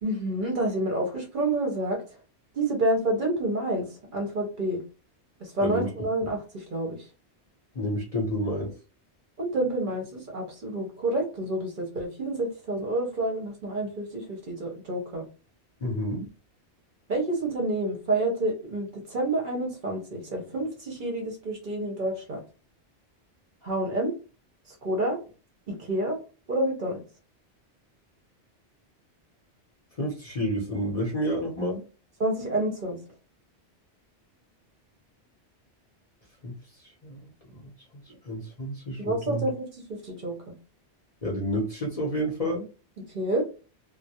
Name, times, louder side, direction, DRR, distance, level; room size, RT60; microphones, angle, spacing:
voice 1, 0.0-2.0 2.5-4.8 5.4-7.1 9.4-15.2 17.1-22.4 23.6-24.2 24.7-25.2 25.7-26.2 26.5-27.0 32.2-33.0 39.0-40.6 43.1-43.4, right 1 dB, 55° right, 1 dB, 0.7 m, -28 dB
voice 2, 7.7-8.7 15.8-16.3 30.0-31.8 36.4-37.7 38.2-39.4 41.2-42.6, equal, 40° left, -3 dB, 0.7 m, -30 dB
2.2 x 2.0 x 2.7 m, 0.34 s
omnidirectional pair, 1.2 m